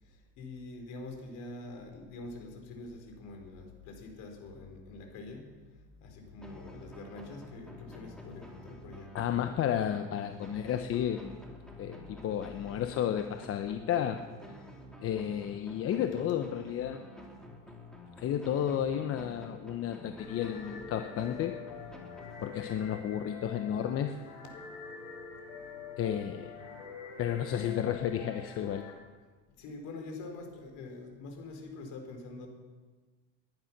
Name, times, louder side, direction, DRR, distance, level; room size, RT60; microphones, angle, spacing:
voice 1, 0.0-9.2 11.8-11.9 24.4-24.6 28.7-28.8 29.6-32.5, left 3 dB, 55° left, 4 dB, 4.3 m, -45 dB
sound 1, 6.4-22.9, left 1 dB, ahead, 3.0 m, -50 dB
voice 2, 9.1-11.3 11.8-14.2 14.5-14.6 15.0-17.0 18.2-21.6 22.4-24.2 26.0-26.5 27.2-28.9, left 10 dB, 40° left, 7 dB, 1.0 m, -32 dB
sound 2, 20.2-28.9, left 5 dB, 80° left, 5.8 m, -46 dB
20.5 x 11.0 x 6.1 m, 1.4 s
supercardioid pair, 120°, 36 cm